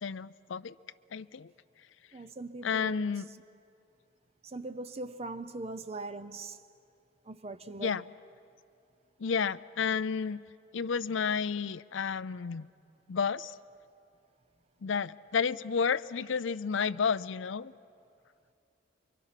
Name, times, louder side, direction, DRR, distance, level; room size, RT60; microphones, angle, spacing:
voice 1, 0.0-0.7 1.1-1.5 2.6-3.3 7.8-8.0 9.2-10.4 10.7-12.7 13.1-13.5 14.8-17.7, left 6 dB, 75° left, 18 dB, 0.5 m, -31 dB
voice 2, 2.1-3.1 4.4-6.6 7.3-8.0, right 2 dB, 30° right, 11 dB, 0.5 m, -41 dB
28.5 x 24.0 x 5.8 m, 2.5 s
head